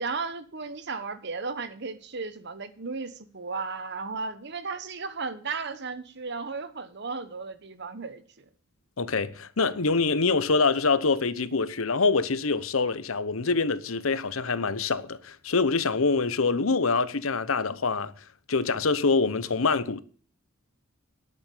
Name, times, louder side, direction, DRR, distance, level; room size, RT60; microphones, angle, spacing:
voice 1, 0.0-8.4, right 4 dB, 55° right, 1.3 m, -35 dB
voice 2, 9.0-18.1 18.5-20.0, left 4 dB, 85° left, 0.9 m, -25 dB
11.0 x 8.0 x 8.3 m
head